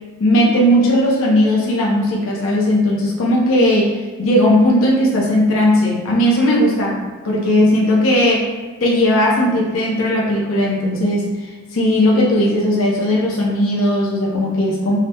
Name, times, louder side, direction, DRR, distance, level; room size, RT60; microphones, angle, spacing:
voice 1, 0.2-3.9 4.2-8.5 8.8-11.3 11.7-15.0, left 1 dB, 80° left, -3 dB, 0.6 m, -16 dB
5.0 x 2.1 x 2.7 m, 1.4 s
head